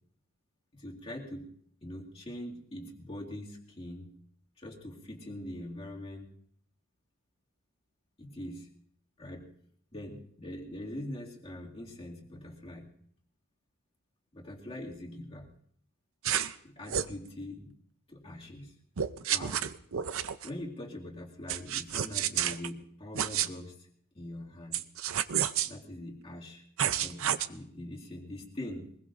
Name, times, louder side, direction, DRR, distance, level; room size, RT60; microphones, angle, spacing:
voice 1, 0.7-1.5 1.8-4.1 4.6-6.3 8.2-8.7 9.2-9.5 9.9-12.9 14.3-15.5 16.6-17.7 18.1-18.7 19.2-19.6 20.4-23.9 24.1-24.8 25.6-26.6 27.0-29.0, left 1 dB, 25° left, -2 dB, 2.4 m, -43 dB
sound 1, 16.2-16.5 16.9-17.1 19.0-20.5 21.5-22.7 23.1-23.5 24.7-25.7 26.8-27.5, right 9 dB, 70° right, 0.6 m, -30 dB
23.0 x 21.0 x 2.6 m, 0.63 s
head